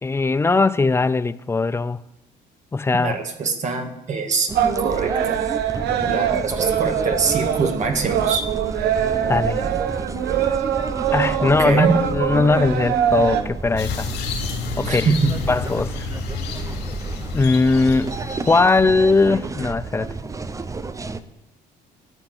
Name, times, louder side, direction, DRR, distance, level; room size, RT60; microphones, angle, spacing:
voice 1, 0.0-2.0 2.7-3.2 9.3-9.7 11.1-14.1 14.8-15.1 15.5-16.1 17.3-18.2 18.5-20.1, left 3 dB, 15° left, 0.4 m, -19 dB
voice 2, 3.0-5.5 6.0-8.5 11.3-12.0 14.8-15.4, right 4 dB, 45° right, 1.7 m, -24 dB
sound 1, 4.5-21.2, right 4 dB, 20° right, 0.7 m, -30 dB
sound 2, 4.5-13.4, right 10 dB, 80° right, 0.9 m, -23 dB
sound 3, 13.8-19.5, left 6 dB, 80° left, 3.0 m, -31 dB
13.0 x 6.1 x 9.0 m
cardioid pair, 110°, 17 cm